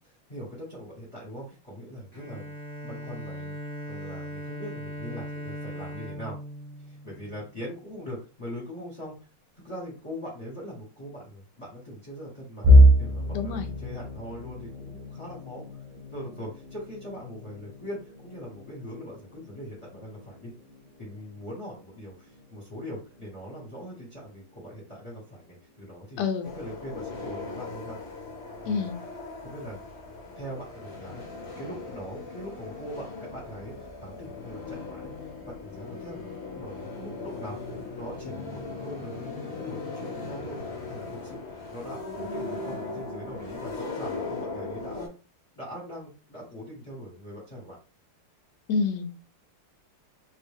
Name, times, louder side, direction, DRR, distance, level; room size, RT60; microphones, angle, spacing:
voice 1, 0.0-2.5 2.8-6.4 6.8-9.3 9.6-15.8 16.1-20.5 21.0-26.2 26.5-28.0 28.6-28.9 29.4-29.8 30.4-31.2 31.6-33.7 34.0-45.1 45.5-47.8, equal, 20° left, -4 dB, 1.3 m, -41 dB
Bowed string instrument, 2.1-7.8, equal, 5° right, 1.1 m, -39 dB
sound 1, 12.6-24.5 24.9-25.2 25.5-25.7 26.6-27.0, equal, 65° right, 0.3 m, -26 dB
voice 2, 13.3-13.7 26.2-26.5 28.7-29.0 48.7-49.2, left 5 dB, 75° left, 6 dB, 1.2 m, -28 dB
sound 2, 26.4-45.1, left 3 dB, 45° left, 1.0 m, -38 dB
2.9 x 2.7 x 3.5 m, 0.33 s
omnidirectional pair, 2.0 m